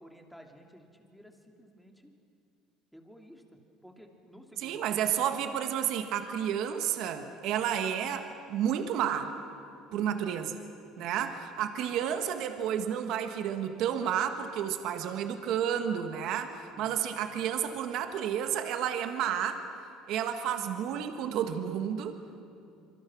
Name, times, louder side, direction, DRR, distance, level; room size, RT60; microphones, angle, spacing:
voice 1, 0.0-2.1 2.9-5.1 9.9-10.2 11.2-11.4 16.7-17.1 22.3-22.4, equal, ahead, 2 dB, 2.9 m, -53 dB
voice 2, 4.6-9.3 9.9-10.5 11.0-19.6 20.1-22.1, right 9 dB, 65° right, 7 dB, 1.7 m, -31 dB
26.5 x 24.0 x 6.3 m, 2.6 s
cardioid pair, 115°, 0 cm